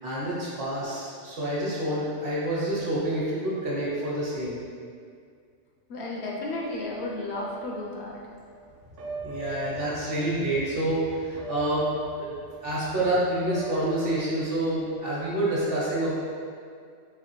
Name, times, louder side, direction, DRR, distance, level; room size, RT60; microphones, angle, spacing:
voice 1, 0.0-4.6 9.2-11.9 12.2-12.3 12.6-16.1, right 1 dB, 50° right, -7 dB, 1.1 m, -28 dB
voice 2, 5.9-8.2, left 2 dB, 70° left, -2 dB, 0.8 m, -33 dB
sound 1, 6.5-15.0, right 2 dB, 85° right, 1.0 m, -42 dB
4.0 x 2.9 x 3.1 m, 2.2 s
omnidirectional pair, 1.2 m